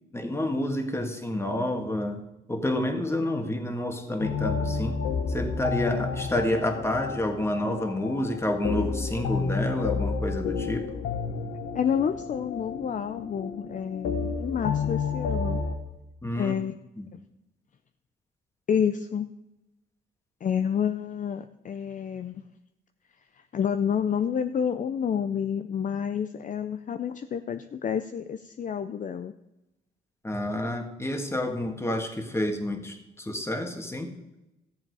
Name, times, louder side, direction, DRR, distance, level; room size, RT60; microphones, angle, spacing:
voice 1, 0.1-2.2 2.5-5.0 5.3-10.9 16.2-16.6 17.0-17.1 30.2-34.1, left 1 dB, 15° left, 5 dB, 1.8 m, -29 dB
sound 1, 4.2-15.8, left 5 dB, 80° left, 1.4 m, -31 dB
voice 2, 11.7-15.6 16.3-16.8 17.1-17.2 18.7-19.3 20.4-22.4 23.5-29.3, left 8 dB, 40° left, 9 dB, 0.5 m, -29 dB
14.0 x 7.4 x 4.8 m, 0.94 s
cardioid pair, 90°, 20 cm